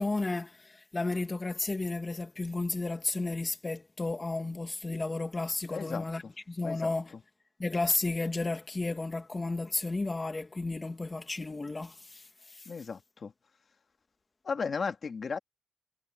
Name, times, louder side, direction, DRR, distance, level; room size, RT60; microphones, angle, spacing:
voice 1, 0.0-6.2 6.5-7.1 7.6-12.7, left 2 dB, 45° left, 2.3 m, -33 dB
voice 2, 5.7-6.1 6.6-6.9 12.7-13.3 14.4-15.4, left 5 dB, 85° left, 2.5 m, -35 dB
cardioid pair, 50°, 0 cm